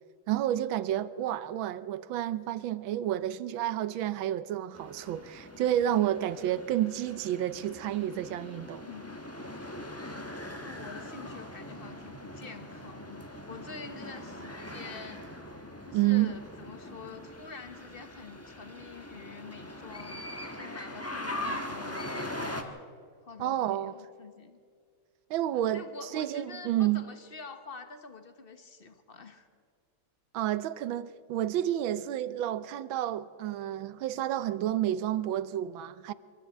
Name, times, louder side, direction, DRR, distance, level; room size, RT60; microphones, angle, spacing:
voice 1, 0.3-8.9 15.9-16.3 23.4-23.9 25.3-25.8 26.1-27.0 30.3-36.1, right 12 dB, 75° right, 1.5 m, -30 dB
sound 1, 4.7-22.6, left 1 dB, 10° left, 1.0 m, -41 dB
voice 2, 8.9-9.2 10.6-15.2 15.9-20.2 20.5-22.8 23.2-24.6 25.7-29.5, left 4 dB, 35° left, 1.0 m, -46 dB
23.5 x 13.5 x 8.3 m
omnidirectional pair, 2.2 m